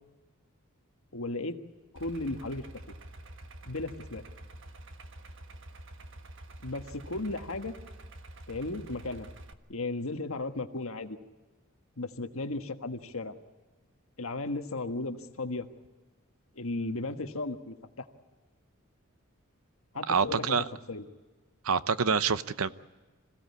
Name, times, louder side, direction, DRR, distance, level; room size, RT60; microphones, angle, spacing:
voice 1, 1.1-1.5 1.9-2.7 3.7-4.2 6.6-7.7 8.5-9.3 9.7-11.2 12.0-13.3 14.2-15.7 16.5-18.0 19.9-21.0, left 2 dB, 70° left, 6 dB, 1.5 m, -35 dB
Idling, 2.0-9.5, right 1 dB, 60° right, 1.4 m, -47 dB
voice 2, 20.1-20.7 21.6-22.7, right 5 dB, 80° right, 14 dB, 0.8 m, -26 dB
26.5 x 16.5 x 8.4 m, 1.3 s
head